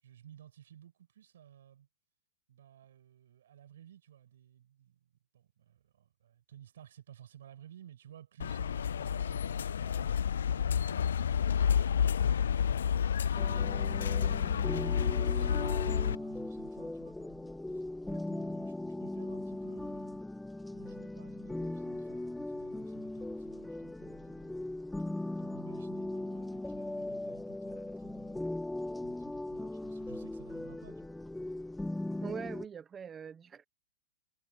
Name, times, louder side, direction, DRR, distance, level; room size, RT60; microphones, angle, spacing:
voice 1, 0.0-1.9 2.5-13.1 13.5-14.6 15.0-20.2 20.7-24.6 24.9-31.1, right 10 dB, 80° right, 6.8 m, -56 dB
sound 1, 8.4-16.1, left 8 dB, 90° left, 0.3 m, -30 dB
sound 2, 13.4-32.6, left 1 dB, 5° left, 1.7 m, -39 dB
voice 2, 32.2-33.6, right 7 dB, 20° right, 1.1 m, -42 dB
hypercardioid pair, 140°, 0 cm